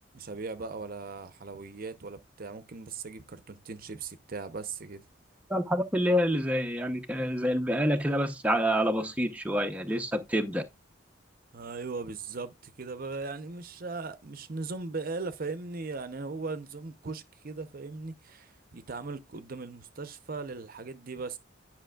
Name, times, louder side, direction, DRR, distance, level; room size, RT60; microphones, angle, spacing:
voice 1, 0.1-5.0 11.5-21.4, right 4 dB, 50° right, 0.7 m, -38 dB
voice 2, 5.5-10.6, equal, 5° right, 0.7 m, -27 dB
10.0 x 5.8 x 2.3 m
head